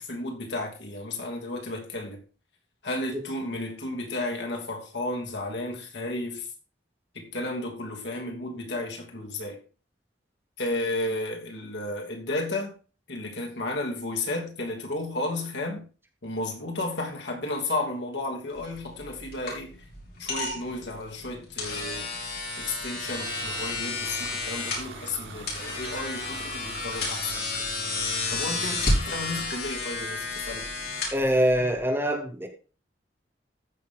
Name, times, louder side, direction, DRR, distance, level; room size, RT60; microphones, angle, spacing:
voice 1, 0.0-2.2 2.8-6.5 7.1-9.6 10.6-12.8 13.1-15.9 16.2-19.9 20.2-22.1 22.6-27.5 28.3-30.7, left 2 dB, 80° left, 2.9 m, -33 dB
Electric Trimmer, 18.5-31.8, left 2 dB, 60° left, 5.7 m, -32 dB
sound 1, 23.1-29.5, right 4 dB, 85° right, 3.2 m, -42 dB
voice 2, 31.1-32.5, equal, 15° right, 2.5 m, -24 dB
14.5 x 6.5 x 3.9 m
head